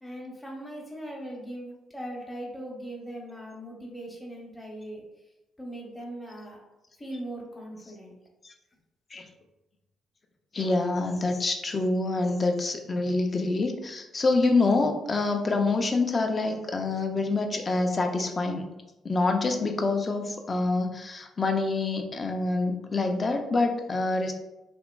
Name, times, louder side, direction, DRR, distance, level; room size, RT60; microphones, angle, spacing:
voice 1, 0.0-5.0 5.6-6.6 7.0-8.1, right 1 dB, 10° left, -2 dB, 0.7 m, -39 dB
voice 2, 10.5-18.7 19.0-24.3, left 3 dB, 35° left, 4 dB, 0.4 m, -26 dB
2.9 x 2.5 x 2.2 m, 0.97 s
cardioid pair, 90°, 0 cm